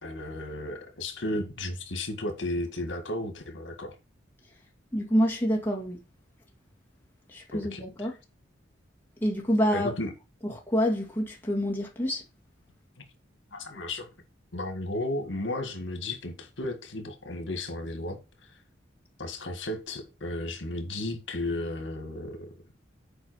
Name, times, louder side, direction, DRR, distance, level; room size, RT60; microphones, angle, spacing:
voice 1, 0.0-4.0 7.5-8.1 9.7-10.1 13.5-14.1 14.5-18.2 19.2-22.5, left 1 dB, 75° left, 1.9 m, -34 dB
voice 2, 4.9-6.0 7.3-8.1 9.2-9.9 10.4-12.2, equal, 10° left, 2.1 m, -27 dB
8.1 x 4.8 x 6.2 m
head